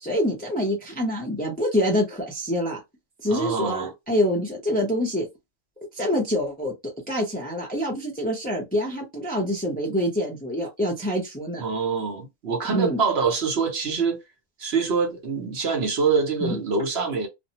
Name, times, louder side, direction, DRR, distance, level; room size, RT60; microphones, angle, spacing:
voice 1, 0.0-2.8 3.2-5.3 5.9-11.6 12.7-13.0 16.4-16.6, equal, 10° left, 0.5 m, -26 dB
voice 2, 3.3-3.9 11.6-14.2 14.6-17.3, right 5 dB, 60° right, 0.9 m, -25 dB
2.5 x 2.1 x 2.8 m
omnidirectional pair, 1.3 m